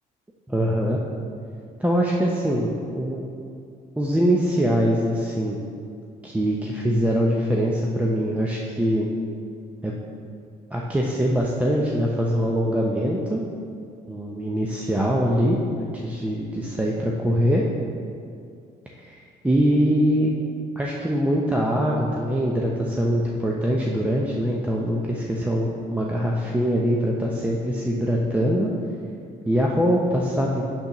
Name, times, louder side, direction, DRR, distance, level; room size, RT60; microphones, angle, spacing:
voice 1, 0.5-1.0 1.8-3.3 4.0-5.6 6.2-9.1 9.8-10.0 10.7-13.4 14.1-17.6 19.0-19.1 19.4-20.3 20.8-28.7 29.5-30.6, equal, 10° right, -2 dB, 0.6 m, -23 dB
8.1 x 6.8 x 3.0 m, 2.4 s
cardioid pair, 110°, 17 cm